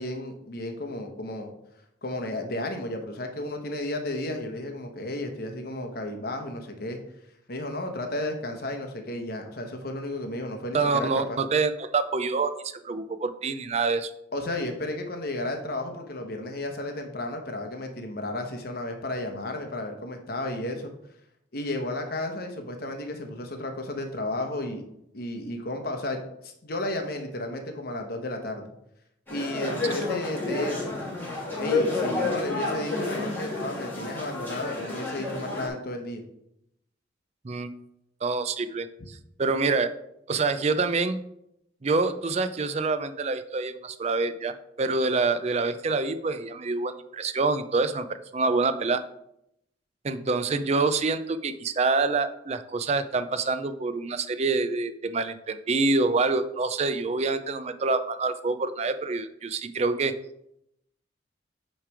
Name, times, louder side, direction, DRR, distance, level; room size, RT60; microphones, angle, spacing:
voice 1, 0.0-1.5 2.0-7.0 7.5-11.4 14.3-20.9 21.5-24.8 25.1-28.7 29.3-31.0 31.6-36.2, left 1 dB, 50° left, 4 dB, 1.1 m, -33 dB
voice 2, 10.7-14.1 37.4-37.7 38.2-40.0 40.3-41.2 41.8-49.0 50.0-60.2, right 3 dB, 35° right, 12 dB, 0.4 m, -26 dB
sound 1, 29.3-35.7, left 3 dB, 10° left, 1.7 m, -30 dB
9.0 x 3.3 x 4.8 m, 0.78 s
head